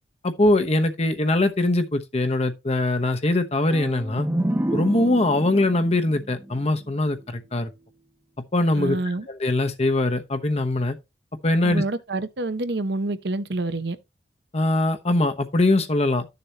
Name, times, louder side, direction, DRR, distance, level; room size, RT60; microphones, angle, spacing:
voice 1, 0.2-4.3 4.7-7.7 8.5-9.0 9.3-11.0 11.4-11.8 14.5-16.3, left 2 dB, 40° left, 1.0 m, -22 dB
sound 1, 3.7-7.4, right 1 dB, 15° right, 0.6 m, -29 dB
voice 2, 8.8-9.3 11.6-14.0, right 2 dB, 70° right, 0.8 m, -27 dB
12.0 x 6.8 x 2.9 m
head